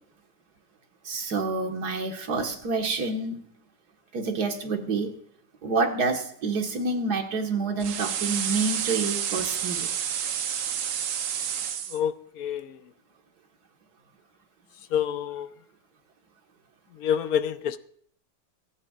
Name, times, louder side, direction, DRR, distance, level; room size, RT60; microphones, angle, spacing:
voice 1, 1.1-3.4 4.1-5.1 5.6-9.9, right 3 dB, 65° right, 4 dB, 2.1 m, -28 dB
sound 1, 7.8-12.0, right 8 dB, 80° right, 1.6 m, -29 dB
voice 2, 11.9-12.8 14.9-15.5 17.0-17.8, left 9 dB, 65° left, 13 dB, 1.0 m, -27 dB
25.5 x 9.3 x 2.4 m, 0.64 s
omnidirectional pair, 1.9 m